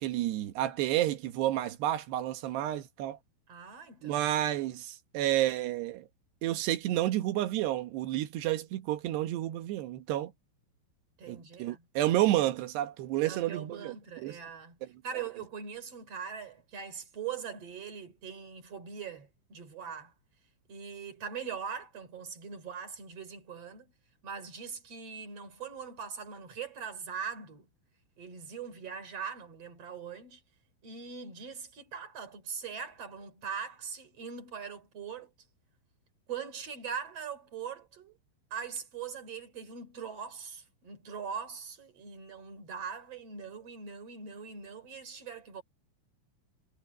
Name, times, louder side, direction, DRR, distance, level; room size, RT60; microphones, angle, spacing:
voice 1, 0.0-3.2 4.0-6.1 6.4-10.3 11.3-14.4, right 14 dB, 70° right, 3.0 m, -30 dB
voice 2, 3.5-4.3 11.2-11.8 13.2-14.8 15.0-20.1 20.7-23.9 24.2-27.7 28.2-30.4 30.8-35.3 36.3-38.2 38.5-45.6, right 6 dB, 35° right, 3.8 m, -41 dB
omnidirectional pair, 5.7 m